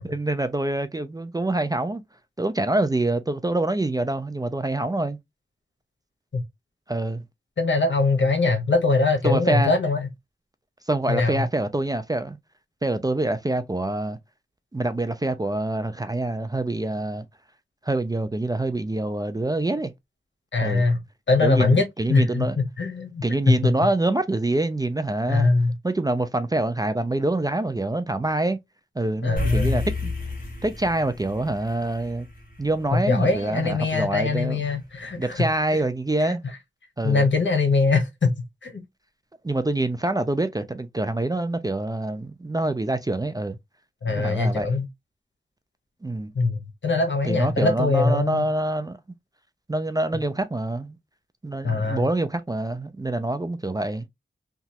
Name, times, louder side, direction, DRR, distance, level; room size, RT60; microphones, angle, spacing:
voice 1, 0.0-2.0 2.4-5.2 6.9-7.2 9.2-9.7 10.9-12.4 12.8-14.2 14.7-17.3 17.9-19.9 20.6-20.9 21.4-22.6 23.2-25.5 25.8-28.6 29.0-30.1 30.6-32.3 32.6-34.6 35.2-36.4 37.0-37.3 39.4-43.6 44.1-44.7 46.0-46.3 47.2-49.0 49.7-51.0 51.4-54.0, right 2 dB, 20° right, 0.3 m, -25 dB
voice 2, 7.6-10.1 11.1-11.4 20.5-21.0 21.3-23.7 25.3-25.7 29.2-29.8 32.9-35.4 35.7-35.8 36.3-36.4 37.0-38.3 38.6-38.8 44.0-44.9 46.3-46.6 46.8-48.4 51.6-52.1, left 3 dB, 70° left, 0.9 m, -22 dB
sound 1, 29.4-33.9, left 2 dB, 45° left, 1.3 m, -31 dB
2.9 x 2.3 x 2.7 m
wide cardioid pair, 85°, 20 cm